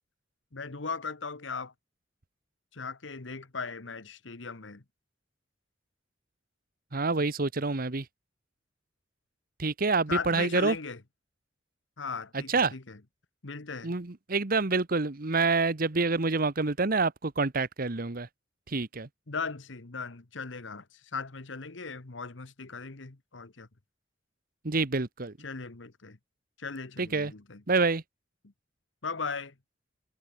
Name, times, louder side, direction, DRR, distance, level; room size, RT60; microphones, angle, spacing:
voice 1, 0.5-1.7 2.7-4.8 10.1-11.0 12.0-13.0 13.4-13.9 19.3-23.7 25.4-26.2 26.6-27.6 29.0-29.5, left 4 dB, 80° left, 1.4 m, -38 dB
voice 2, 6.9-8.0 9.6-10.8 12.3-12.7 13.8-18.3 18.7-19.1 24.6-25.3 27.0-27.3 27.7-28.0, right 3 dB, 50° right, 1.2 m, -27 dB
head